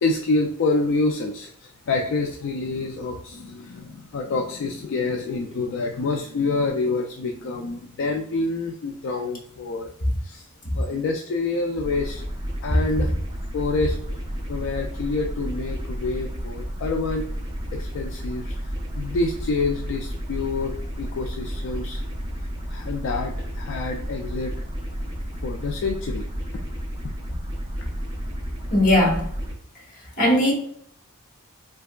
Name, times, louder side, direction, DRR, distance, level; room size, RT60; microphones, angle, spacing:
voice 1, 0.0-9.9 10.2-10.4 10.7-12.2 12.6-13.1 13.5-14.0 14.5-17.2 17.7-22.0 22.7-24.5 25.4-26.3 27.0-27.1, left 3 dB, 55° left, 2 dB, 0.3 m, -27 dB
sound 1, 11.8-29.5, equal, 20° right, 0.6 m, -32 dB
voice 2, 28.7-29.3 30.2-30.5, left 1 dB, 40° left, -1 dB, 1.0 m, -18 dB
3.3 x 2.8 x 2.2 m, 0.66 s
head